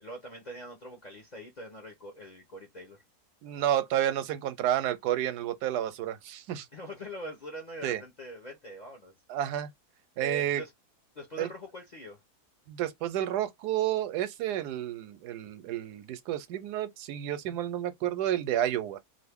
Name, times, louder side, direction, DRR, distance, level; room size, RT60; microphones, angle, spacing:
voice 1, 0.0-3.0 6.7-9.1 10.2-10.7 11.1-12.2, equal, 45° left, 0.6 m, -43 dB
voice 2, 3.4-6.7 7.8-8.0 9.3-9.7 10.2-10.6 11.4-11.5 12.7-19.0, right 11 dB, 90° right, 1.2 m, -30 dB
2.6 x 2.6 x 3.5 m
omnidirectional pair, 1.7 m